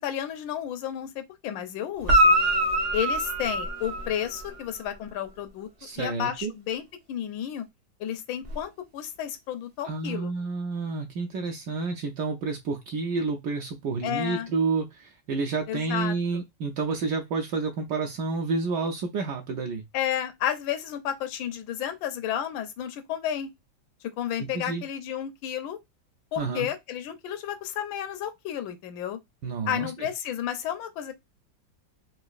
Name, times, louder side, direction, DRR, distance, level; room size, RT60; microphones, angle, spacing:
voice 1, 0.0-2.3 2.9-5.7 6.0-6.8 7.1-7.6 8.0-10.3 14.0-14.5 15.7-16.1 19.9-23.5 24.2-25.8 26.3-29.2 29.7-31.1, left 10 dB, 85° left, 1.4 m, -32 dB
Guitar, 2.0-4.6 8.4-8.5, equal, 50° right, 0.7 m, -23 dB
voice 2, 5.8-6.5 9.8-19.8 24.4-24.8 26.4-26.7 29.4-30.1, right 4 dB, 75° right, 1.1 m, -30 dB
3.9 x 2.4 x 2.3 m
omnidirectional pair, 2.1 m